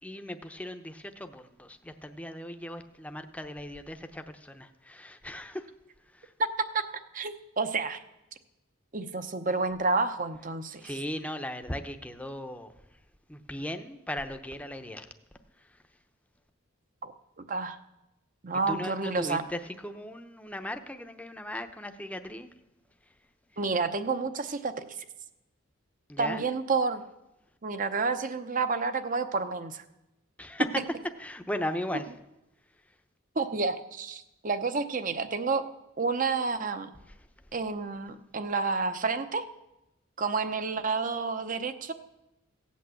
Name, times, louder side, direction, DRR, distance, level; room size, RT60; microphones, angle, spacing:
voice 1, 0.0-5.7 6.1-6.3 10.8-12.7 13.3-15.1 15.6-15.8 18.7-22.5 26.1-26.5 30.4-30.7 31.2-32.1 37.1-37.2, left 1 dB, 5° left, 7 dB, 0.8 m, -37 dB
voice 2, 7.1-8.0 8.9-10.8 17.0-17.1 17.5-17.8 18.4-19.4 23.6-25.0 26.2-27.0 27.6-29.8 33.3-35.6 36.0-36.9 37.5-39.4 40.2-41.9, right 4 dB, 40° right, 10 dB, 0.8 m, -29 dB
16.0 x 8.4 x 7.7 m, 0.93 s
head